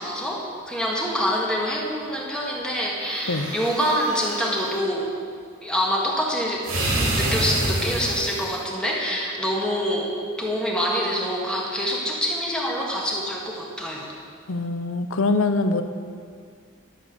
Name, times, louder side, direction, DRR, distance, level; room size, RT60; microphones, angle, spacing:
voice 1, 0.0-5.1 5.6-6.6 7.1-14.1, equal, 5° left, -3 dB, 1.7 m, -26 dB
sound 1, 3.0-4.8 6.6-8.6, right 1 dB, 80° right, 3.0 m, -27 dB
voice 2, 14.5-15.8, left 3 dB, 80° left, 9 dB, 0.8 m, -23 dB
11.5 x 7.4 x 6.9 m, 2.2 s
head